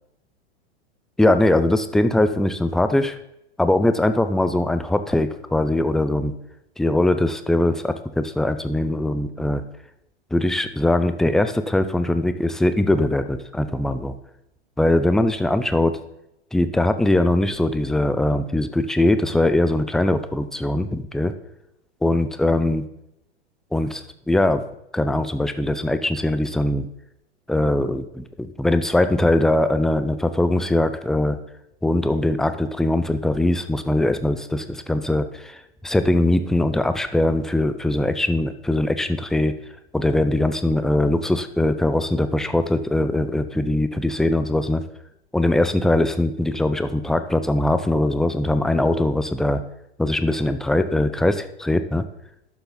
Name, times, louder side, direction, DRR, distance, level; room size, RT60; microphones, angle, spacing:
voice 1, 1.2-3.2 3.6-6.3 6.8-9.6 10.3-14.1 14.8-16.0 16.5-21.3 22.0-22.8 23.7-24.6 24.9-26.9 27.5-31.4 31.8-39.5 39.9-44.8 45.3-49.6 50.0-52.0, left 1 dB, ahead, 10 dB, 0.5 m, -21 dB
11.5 x 7.2 x 4.0 m, 0.84 s
hypercardioid pair, 100°, 32 cm